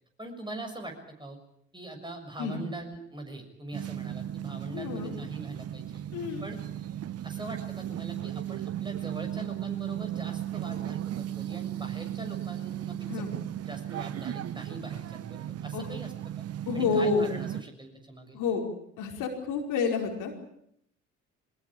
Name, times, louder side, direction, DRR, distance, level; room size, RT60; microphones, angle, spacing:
voice 1, 0.2-1.4 1.7-6.0 6.4-6.6 7.2-13.2 13.7-16.4 16.7-18.4, right 2 dB, 15° right, 4 dB, 6.8 m, -42 dB
sound 1, 3.7-17.6, right 11 dB, 40° right, 1.1 m, -36 dB
voice 2, 4.7-5.1 6.1-6.4 13.1-13.3 15.7-15.9 16.6-17.3 18.3-18.6 19.0-20.3, left 5 dB, 60° left, 2 dB, 5.0 m, -29 dB
23.0 x 20.5 x 8.8 m, 0.71 s
figure-of-eight pair, 55°, 35 cm